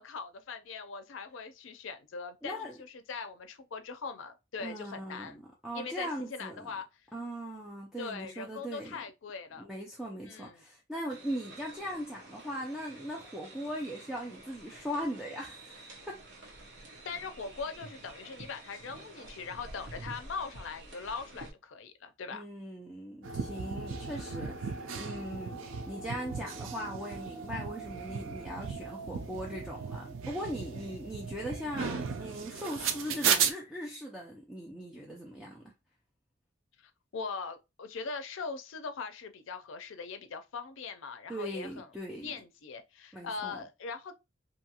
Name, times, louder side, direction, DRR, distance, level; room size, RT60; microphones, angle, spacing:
voice 1, 0.0-5.4 5.7-6.8 8.0-9.7 10.3-10.6 17.0-22.4 36.8-41.9 42.2-44.2, left 5 dB, 80° left, 0.4 m, -41 dB
voice 2, 2.4-2.8 4.6-6.7 7.1-9.0 9.5-16.2 22.3-35.6 41.3-42.4 43.1-43.6, equal, 5° right, 0.4 m, -39 dB
sound 1, 11.1-21.5, right 2 dB, 60° right, 0.8 m, -50 dB
sound 2, 23.2-33.5, right 6 dB, 85° right, 0.4 m, -35 dB
2.6 x 2.3 x 2.8 m
head